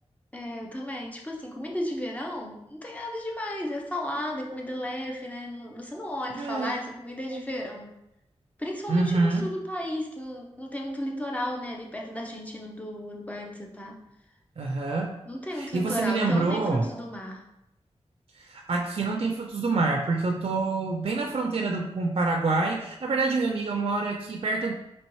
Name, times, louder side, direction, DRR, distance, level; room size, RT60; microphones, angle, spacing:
voice 1, 0.3-7.9 8.6-14.0 15.3-17.5, left 1 dB, 10° left, 0 dB, 0.7 m, -34 dB
voice 2, 6.4-6.8 8.9-9.4 14.6-15.1 15.6-16.9 18.4-24.7, right 3 dB, 50° right, 2 dB, 0.4 m, -26 dB
4.2 x 3.1 x 3.0 m, 0.86 s
wide cardioid pair, 75°, 12 cm